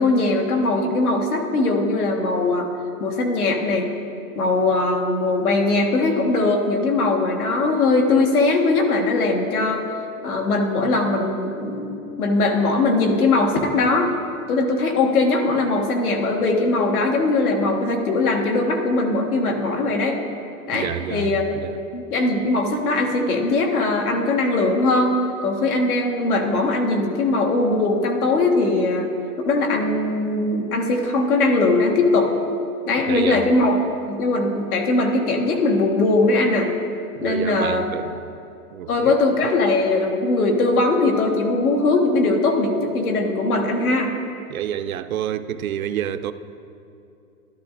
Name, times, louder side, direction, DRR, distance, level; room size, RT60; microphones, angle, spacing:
voice 1, 0.0-2.7 3.0-3.9 4.3-9.8 10.2-14.1 14.5-20.2 20.7-21.4 21.9-29.1 29.4-32.3 32.8-33.8 34.1-36.7 37.2-37.8 38.9-44.1, left 2 dB, 65° left, 1.5 m, -20 dB
voice 2, 20.7-21.8 33.1-33.5 37.2-38.4 38.7-39.2 44.5-46.3, right 10 dB, 65° right, 0.5 m, -28 dB
12.5 x 12.0 x 2.5 m
hypercardioid pair, 175°, 46 cm